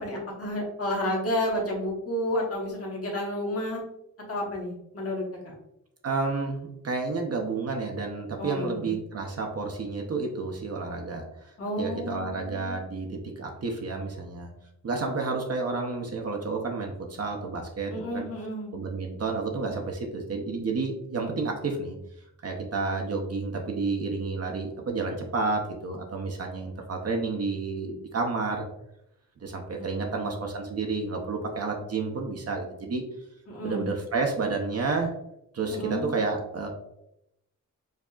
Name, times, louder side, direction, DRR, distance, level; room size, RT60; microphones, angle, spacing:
voice 1, 0.0-3.8 4.3-5.5 8.4-9.0 11.6-12.8 17.9-18.7 29.8-30.3 33.5-33.9 35.7-36.1, left 1 dB, 45° left, -1 dB, 1.1 m, -31 dB
voice 2, 6.0-11.5 11.8-14.5 14.8-18.3 18.7-22.0 22.4-28.7 29.4-33.0 33.6-35.1 35.5-36.7, right 3 dB, 50° right, 1 dB, 0.6 m, -30 dB
4.7 x 2.7 x 2.3 m, 0.82 s
wide cardioid pair, 130°, 32 cm